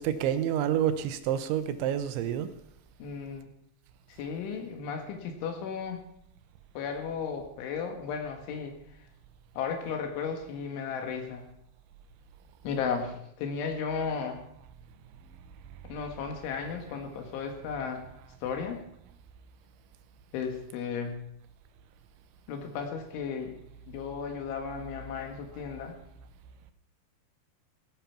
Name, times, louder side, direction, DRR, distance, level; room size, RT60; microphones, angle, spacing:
voice 1, 0.0-2.5, right 10 dB, 85° right, 11 dB, 3.2 m, -28 dB
voice 2, 3.0-3.5 4.2-6.0 6.8-8.8 9.6-11.5 12.6-14.4 15.8-18.0 18.4-18.8 20.3-21.2 22.5-23.6 23.9-26.0, left 6 dB, 90° left, 4 dB, 4.2 m, -34 dB
16.5 x 9.2 x 5.9 m, 0.71 s
omnidirectional pair, 5.3 m